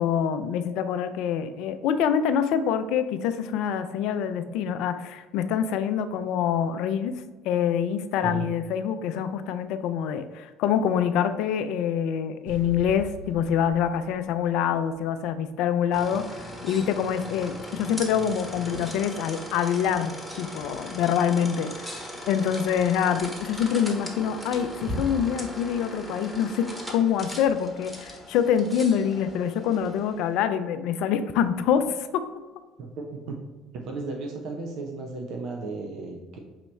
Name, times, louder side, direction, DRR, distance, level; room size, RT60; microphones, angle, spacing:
voice 1, 0.0-7.1 7.4-32.2, left 8 dB, 65° left, 10 dB, 0.3 m, -26 dB
sound 1, 12.5-15.4, right 2 dB, 90° right, 0.8 m, -43 dB
sound 2, 15.9-30.3, equal, ahead, 1.1 m, -38 dB
voice 2, 32.8-33.4 33.7-36.4, right 3 dB, 60° right, 2 dB, 0.6 m, -34 dB
5.6 x 2.9 x 3.2 m, 1.3 s
hypercardioid pair, 65°, 0 cm